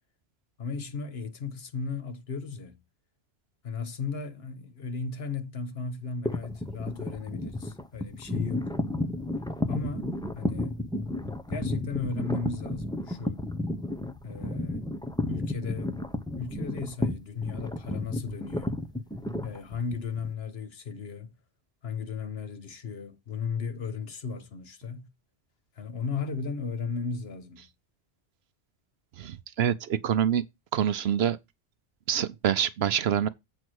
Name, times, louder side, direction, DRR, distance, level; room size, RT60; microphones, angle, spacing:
voice 1, 0.6-2.8 3.6-8.7 9.7-10.1 10.3-10.8 11.5-13.4 14.2-14.9 15.3-16.0 16.4-18.8 19.4-21.3 21.8-25.1 25.7-27.7, left 5 dB, 60° left, 1.3 m, -35 dB
sound 1, 6.2-20.3, left 1 dB, 5° left, 0.6 m, -32 dB
voice 2, 29.1-30.4 30.7-31.4 32.1-33.3, right 9 dB, 65° right, 0.8 m, -26 dB
8.0 x 4.5 x 6.2 m
omnidirectional pair, 1.2 m